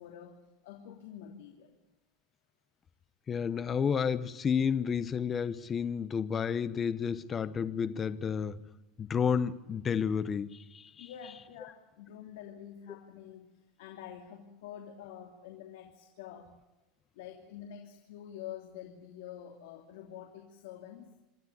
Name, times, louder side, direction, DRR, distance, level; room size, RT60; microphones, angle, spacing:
voice 1, 0.0-1.8 11.0-16.5 17.1-21.1, left 10 dB, 80° left, 2.9 m, -47 dB
voice 2, 3.3-8.7 9.0-11.1, left 7 dB, 20° left, 0.9 m, -31 dB
26.0 x 13.0 x 9.6 m
supercardioid pair, 155°, 0 cm